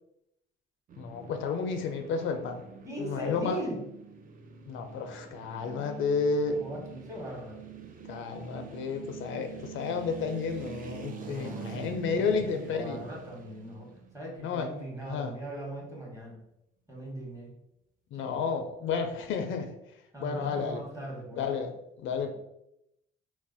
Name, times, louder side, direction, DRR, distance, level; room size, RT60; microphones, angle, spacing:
sound 1, 0.9-15.1, right 6 dB, 45° right, 0.5 m, -45 dB
voice 1, 1.0-2.7 3.0-3.6 4.6-6.6 8.1-13.0 14.4-14.7 15.0-15.3 18.1-19.7 20.2-20.8 21.4-22.3, left 5 dB, 80° left, 6 dB, 0.4 m, -31 dB
voice 2, 2.8-3.8 6.5-7.6 11.3-13.9 14.1-16.4 16.9-17.5 18.1-18.4 20.1-21.5 22.2-22.3, right 1 dB, 15° right, -3 dB, 1.2 m, -39 dB
2.3 x 2.1 x 3.8 m, 0.82 s
cardioid pair, 90°, 20 cm